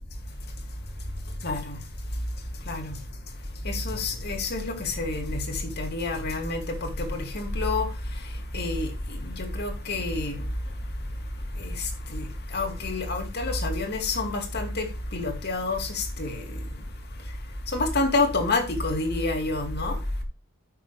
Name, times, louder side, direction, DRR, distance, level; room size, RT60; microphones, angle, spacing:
voice 1, 0.3-20.2, left 2 dB, 50° left, 2.4 m, -29 dB
12.5 x 6.4 x 3.3 m
head